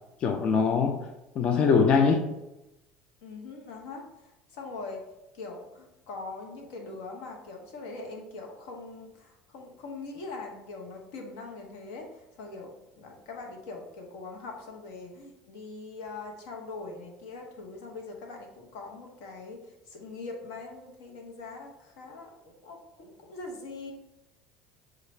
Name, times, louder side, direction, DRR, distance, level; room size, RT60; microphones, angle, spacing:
voice 1, 0.2-2.3, left 5 dB, 40° left, 0.3 m, -23 dB
voice 2, 3.2-5.1 5.3-23.9, left 3 dB, 85° left, 1.0 m, -42 dB
5.9 x 2.4 x 3.1 m
cardioid pair, 135°, 3 cm